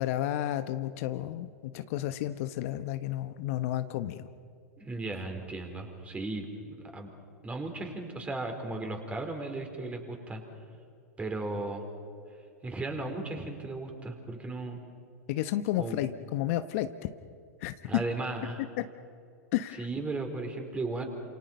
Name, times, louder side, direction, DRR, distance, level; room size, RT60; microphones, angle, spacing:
voice 1, 0.0-4.3 15.3-17.1 17.6-17.9 19.5-19.9, left 13 dB, 55° left, 10 dB, 1.1 m, -32 dB
voice 2, 4.8-6.5 6.9-7.1 7.4-10.4 11.2-11.8 12.6-14.8 15.8-16.0 17.8-18.7 19.8-21.0, right 2 dB, 15° right, 4 dB, 4.5 m, -35 dB
29.0 x 28.0 x 5.6 m, 2.4 s
hypercardioid pair, 100°, 9 cm